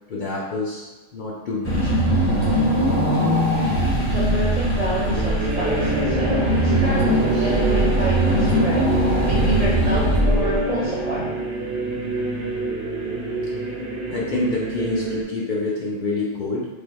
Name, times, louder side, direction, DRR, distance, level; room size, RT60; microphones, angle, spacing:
voice 1, 0.1-0.9 1.1-1.9 14.1-16.7, left 2 dB, 55° left, -5 dB, 0.6 m, -27 dB
Car / Engine, 1.6-10.8, equal, 15° left, 1.3 m, -21 dB
sound 1, 3.8-15.2, right 2 dB, 60° right, 1.0 m, -28 dB
voice 2, 4.1-8.9 9.3-11.3, right 2 dB, 45° right, -6 dB, 0.5 m, -27 dB
4.1 x 3.4 x 2.3 m, 1.1 s
omnidirectional pair, 1.3 m